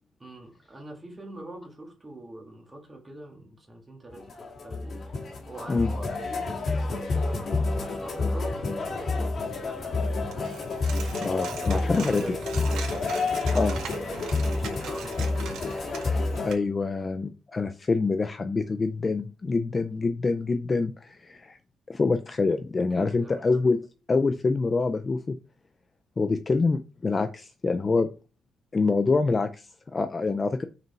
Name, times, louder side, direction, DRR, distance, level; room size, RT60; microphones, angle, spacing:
voice 1, 0.2-5.0 5.5-7.3 7.7-10.5 11.5-12.6 14.0-15.3 22.8-23.4, right 2 dB, 15° right, 2.0 m, -44 dB
sound 1, 4.1-16.5, left 3 dB, 40° left, 1.7 m, -29 dB
Coin (dropping), 10.3-16.5, right 7 dB, 85° right, 1.8 m, -41 dB
voice 2, 11.2-12.2 13.5-13.8 16.4-21.6 21.9-23.8 24.1-25.4 26.2-28.1 28.7-30.6, left 3 dB, 20° left, 0.4 m, -26 dB
6.2 x 4.9 x 4.7 m
cardioid pair, 175°, 0 cm